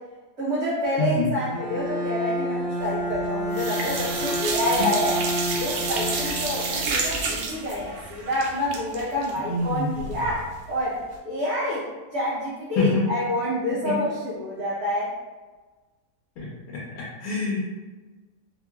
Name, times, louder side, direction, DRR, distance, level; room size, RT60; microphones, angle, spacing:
voice 1, 0.4-5.1 5.5-11.9 12.1-15.1, left 1 dB, 55° right, -10 dB, 1.1 m, -28 dB
voice 2, 1.0-1.3 4.8-4.9 9.4-9.9 12.8-13.1 13.7-14.0 16.4-17.6, left 3 dB, 80° left, -5 dB, 1.1 m, -26 dB
Bowed string instrument, 1.5-7.4, equal, 10° left, 0.8 m, -30 dB
sound 1, 2.9-3.3 3.5-10.4 10.7-10.8 11.1-11.2, right 4 dB, 85° right, 1.1 m, -30 dB
3.0 x 2.8 x 2.3 m, 1.3 s
omnidirectional pair, 1.5 m